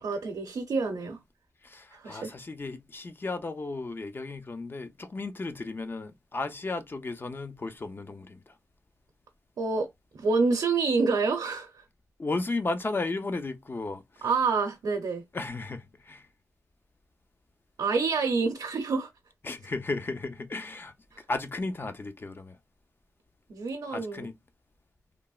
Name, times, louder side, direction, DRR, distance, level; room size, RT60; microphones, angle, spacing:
voice 1, 0.0-1.2 1.9-2.3 9.6-11.8 14.2-15.2 17.8-19.1 21.1-21.2 23.5-24.3, right 4 dB, 75° right, 0.6 m, -28 dB
voice 2, 1.6-8.5 12.2-14.2 15.3-16.3 19.4-20.9 21.3-22.6 23.9-24.4, left 3 dB, 35° left, 0.5 m, -34 dB
3.3 x 2.0 x 2.3 m
cardioid pair, 65°, 7 cm